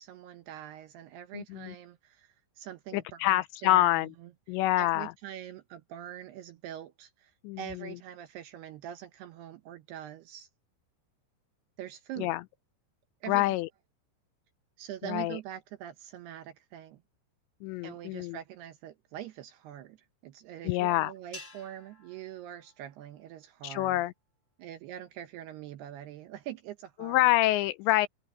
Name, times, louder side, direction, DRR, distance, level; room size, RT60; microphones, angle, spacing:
voice 1, 0.0-4.3 4.8-10.5 11.8-12.3 13.2-13.5 14.8-17.0 17.8-20.0 20.2-24.0 24.6-27.4, right 11 dB, 75° right, 2.6 m, -44 dB
voice 2, 1.3-1.7 2.9-4.1 4.5-5.1 7.4-7.6 12.2-12.4 13.3-13.7 15.0-15.4 17.6-18.4 20.7-21.1 23.6-24.1 27.0-28.1, left 17 dB, 80° left, 2.6 m, -26 dB
sound 1, 21.3-23.8, left 2 dB, 20° left, 2.0 m, -52 dB
omnidirectional pair, 5.5 m